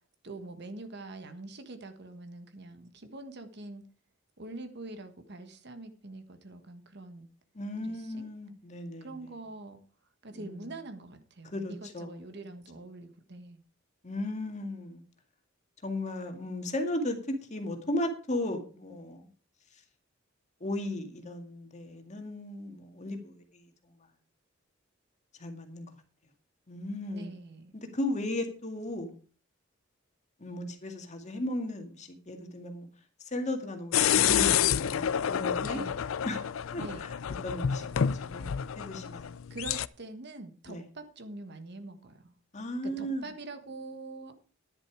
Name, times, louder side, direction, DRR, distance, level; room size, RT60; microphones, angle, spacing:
voice 1, 0.2-3.9 4.4-7.3 7.8-8.3 9.0-9.8 10.2-13.6 27.1-27.7 35.6-36.0 36.8-37.0 39.5-42.3 42.8-44.3, right 2 dB, 55° right, 1.4 m, -44 dB
voice 2, 7.5-9.2 10.3-10.7 11.4-12.1 14.0-15.0 15.8-19.3 20.6-23.6 25.4-25.9 26.7-27.4 27.7-29.2 30.4-32.9 33.2-35.8 36.2-36.4 36.7-37.1 37.4-39.3 40.7-40.8 42.5-43.3, left 1 dB, 35° left, 2.0 m, -36 dB
sound 1, 33.9-39.9, left 9 dB, 75° left, 0.4 m, -28 dB
10.5 x 10.5 x 4.8 m
head